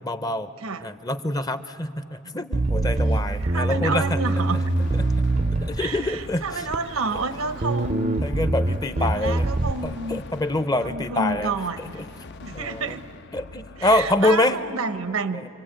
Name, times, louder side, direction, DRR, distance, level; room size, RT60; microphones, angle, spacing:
voice 1, 0.0-0.5 0.8-4.2 5.6-6.7 8.2-9.5 9.8-11.5 11.8-12.1 12.5-12.9 13.3-14.6, left 2 dB, 20° left, 11 dB, 0.6 m, -25 dB
Bass guitar, 2.5-6.1 6.7-7.3 7.6-9.7, right 2 dB, 30° right, 0.6 m, -24 dB
voice 2, 3.4-4.6 5.8-8.3 8.9-10.2 10.8-13.0 13.8-15.5, right 4 dB, 85° right, 11 dB, 1.1 m, -30 dB
sound 1, 4.1-14.3, left 3 dB, 55° left, 0.6 m, -43 dB
26.5 x 24.0 x 8.9 m, 2.8 s
head